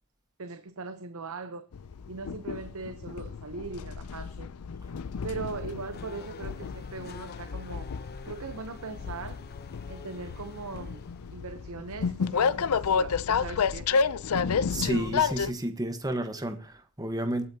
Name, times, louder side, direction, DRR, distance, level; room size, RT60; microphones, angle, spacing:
voice 1, 0.4-1.7 2.1-4.5 5.2-7.9 8.2-9.4 9.9-11.0 11.3-14.1, right 4 dB, 75° right, 0.9 m, -40 dB
Train, 1.7-15.5, left 6 dB, 85° left, 0.5 m, -31 dB
Race car auto racing / Accelerating revving vroom, 4.8-11.5, left 4 dB, 45° left, 0.9 m, -48 dB
voice 2, 14.7-17.5, right 1 dB, 20° right, 1.2 m, -31 dB
23.5 x 8.7 x 2.8 m
head